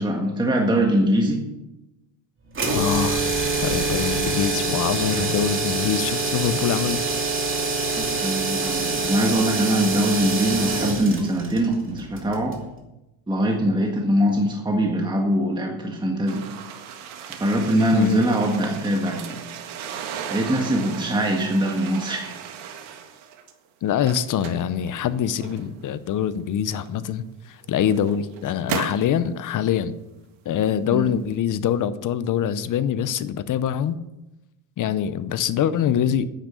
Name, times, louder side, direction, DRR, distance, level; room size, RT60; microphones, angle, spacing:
voice 1, 0.0-1.4 8.0-12.6 13.3-16.4 17.4-19.4 20.3-22.4 30.9-31.1, right 1 dB, 10° right, 1 dB, 1.5 m, -22 dB
sound 1, 2.5-12.6, right 3 dB, 25° right, 2.6 m, -25 dB
voice 2, 2.7-3.3 3.6-7.0 17.9-18.2 23.8-29.9 30.5-34.0 34.8-36.3, left 9 dB, 40° left, 14 dB, 0.7 m, -24 dB
sound 2, 16.3-23.5 23.9-25.9 26.8-26.9 27.6-29.1, right 7 dB, 75° right, 1.9 m, -36 dB
10.0 x 9.1 x 6.9 m, 0.96 s
cardioid pair, 130°, 48 cm